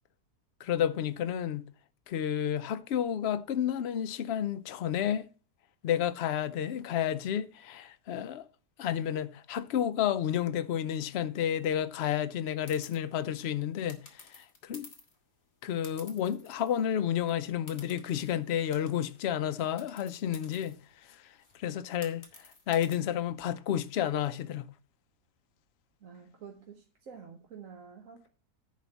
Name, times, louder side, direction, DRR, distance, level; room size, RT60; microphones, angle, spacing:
voice 1, 0.6-1.7 2.1-5.3 5.8-8.4 8.8-14.0 14.3-14.9 15.6-20.8 21.6-22.2 22.7-24.7, left 10 dB, 85° left, 0.5 m, -31 dB
sound 1, 12.6-13.0 13.9-15.2 15.8-16.9 17.2-17.3 17.7-19.2 19.8-22.9, left 3 dB, 35° left, 1.9 m, -53 dB
voice 2, 26.0-28.3, right 6 dB, 55° right, 1.4 m, -49 dB
10.5 x 4.1 x 7.2 m
omnidirectional pair, 1.8 m